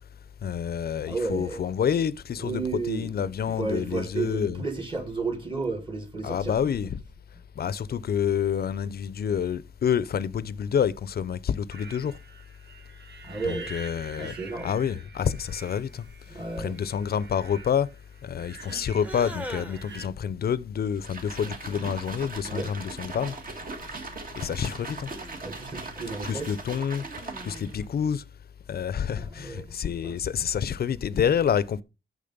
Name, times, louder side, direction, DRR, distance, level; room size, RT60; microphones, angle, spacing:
voice 1, 0.4-4.6 6.2-7.0 7.6-12.2 13.4-14.3 14.6-16.0 16.6-17.9 18.2-23.4 24.4-25.1 26.2-28.2 28.7-31.8, left 8 dB, 50° left, 0.5 m, -28 dB
voice 2, 1.0-1.7 2.4-3.1 3.6-6.5 13.2-13.7 14.2-14.7 16.3-16.8 22.4-22.7 25.4-26.5 29.2-29.7 30.0-30.2, right 4 dB, 25° right, 1.6 m, -32 dB
sound 1, 11.7-20.1, right 4 dB, 65° right, 1.2 m, -46 dB
sound 2, 19.0-20.0 21.3-22.0 23.2-24.0 24.5-25.5 26.2-28.0, equal, 5° right, 0.9 m, -43 dB
sound 3, 21.0-27.8, right 3 dB, 45° right, 1.7 m, -39 dB
8.6 x 6.4 x 5.3 m
wide cardioid pair, 150°, 20 cm